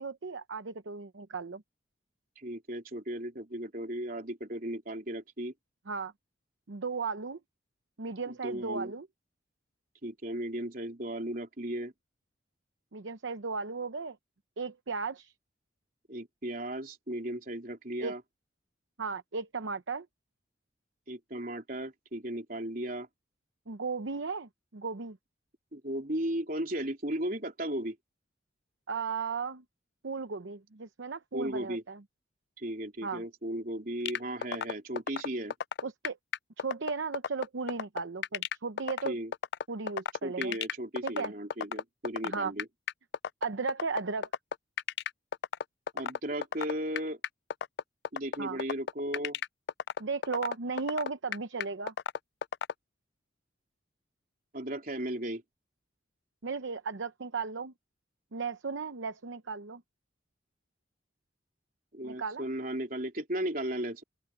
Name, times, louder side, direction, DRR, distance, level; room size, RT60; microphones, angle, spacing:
voice 1, 0.0-1.6 5.9-6.1 6.7-7.4 8.0-9.1 12.9-14.2 14.6-15.3 18.0-18.1 19.0-20.1 23.7-25.2 28.9-29.6 30.0-32.0 33.0-33.2 35.8-36.2 36.6-39.2 39.7-40.6 41.0-41.3 42.2-42.5 43.4-44.3 48.4-48.6 50.0-51.9 56.4-57.7 58.3-59.8 62.0-62.5, right 4 dB, 80° right, 0.8 m, -35 dB
voice 2, 2.4-5.5 8.3-8.9 10.0-11.9 16.1-18.2 21.1-23.1 25.7-28.0 31.3-31.8 32.6-35.5 39.0-39.3 40.2-42.7 45.9-47.2 48.1-49.4 54.5-55.4 61.9-64.0, right 1 dB, 45° right, 3.8 m, -35 dB
sound 1, 34.1-52.7, left 8 dB, 60° left, 0.3 m, -32 dB
open air
head